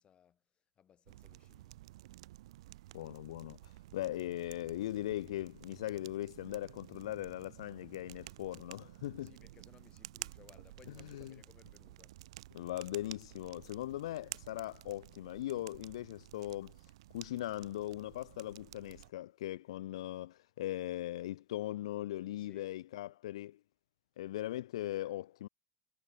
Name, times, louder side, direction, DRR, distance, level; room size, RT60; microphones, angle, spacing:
voice 1, 0.0-1.8 9.2-12.2 22.4-22.7, left 9 dB, 35° left, 7.0 m, -63 dB
sound 1, 1.1-19.1, right 16 dB, 80° right, 0.7 m, -52 dB
voice 2, 2.9-9.3 11.1-11.4 12.5-16.8 17.1-23.6 24.2-25.5, left 14 dB, 85° left, 0.3 m, -39 dB
supercardioid pair, 110°, 3 cm